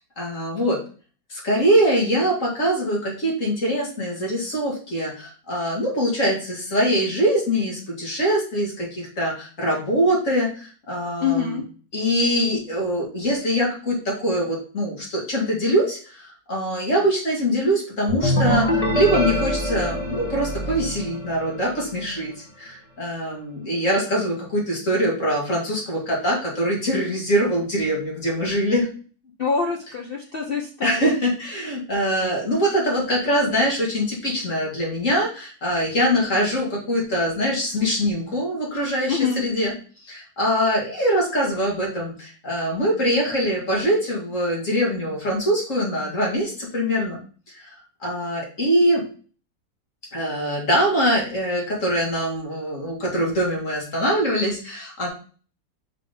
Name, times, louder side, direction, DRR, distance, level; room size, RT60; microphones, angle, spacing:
voice 1, 0.2-0.8 1.3-11.6 11.9-28.9 30.8-39.7 40.0-47.2 47.5-47.7 48.0-49.0 50.1-55.1, equal, 45° left, -2 dB, 2.2 m, -23 dB
voice 2, 11.2-11.6 29.4-31.2 39.1-39.5, left 6 dB, 70° left, 1 dB, 0.5 m, -25 dB
sound 1, 18.1-21.8, equal, 20° left, 1.2 m, -24 dB
5.0 x 3.7 x 5.1 m, 0.40 s
omnidirectional pair, 1.9 m